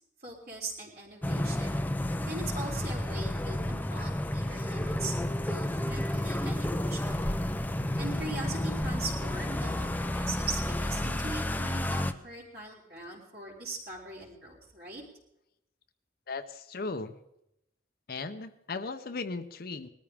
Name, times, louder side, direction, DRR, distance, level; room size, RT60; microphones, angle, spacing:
voice 1, 0.2-1.8 2.2-5.1 5.4-7.4 8.0-15.0, right 2 dB, 55° right, -5 dB, 4.2 m, -40 dB
sound 1, 1.2-12.1, left 1 dB, 10° left, 0.5 m, -31 dB
voice 2, 16.3-17.1 18.1-19.9, left 3 dB, 50° left, 9 dB, 0.7 m, -37 dB
20.5 x 13.5 x 3.6 m, 0.82 s
head